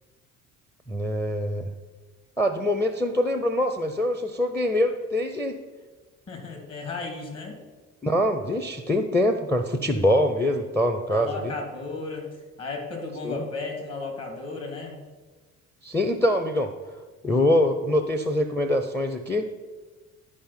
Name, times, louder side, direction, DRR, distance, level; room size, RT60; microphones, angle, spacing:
voice 1, 0.9-1.7 2.4-5.6 8.0-11.5 13.2-13.4 15.8-16.7 17.2-19.5, left 1 dB, 5° left, 7 dB, 0.6 m, -24 dB
voice 2, 6.3-7.6 10.4-12.3 12.6-15.0, left 3 dB, 40° left, 1 dB, 2.8 m, -35 dB
11.5 x 5.1 x 4.4 m, 1.3 s
figure-of-eight pair, 50°, 39 cm